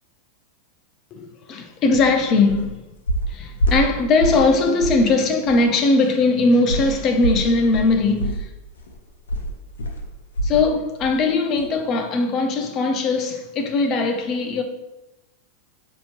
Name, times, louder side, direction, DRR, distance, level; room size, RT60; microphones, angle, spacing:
voice 1, 1.1-2.8 3.3-8.5 10.4-14.6, left 3 dB, 40° left, 0.5 m, -20 dB
sound 1, 1.9-2.1 2.5-2.7 3.1-4.5 4.8-5.1 5.5-5.6 6.7-10.7 11.0-11.2 11.6-11.7, right 1 dB, 80° left, 0.6 m, -25 dB
5.4 x 2.8 x 2.9 m
hypercardioid pair, 105°, 0 cm